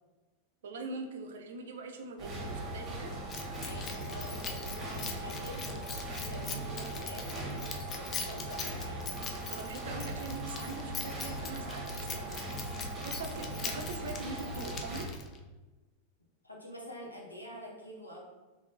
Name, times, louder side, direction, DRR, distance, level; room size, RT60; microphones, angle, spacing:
voice 1, 0.6-3.1 9.5-12.4 13.0-15.1, right 3 dB, 60° right, 4 dB, 0.5 m, -42 dB
sound 1, 2.2-15.1, right 1 dB, 15° right, 1.4 m, -39 dB
Keys jangling, 3.3-15.4, left 5 dB, 25° left, 0.4 m, -42 dB
voice 2, 3.6-9.2 16.4-18.2, equal, 85° left, -2 dB, 0.8 m, -47 dB
3.5 x 3.1 x 2.6 m, 1.2 s
figure-of-eight pair, 90°, 0 cm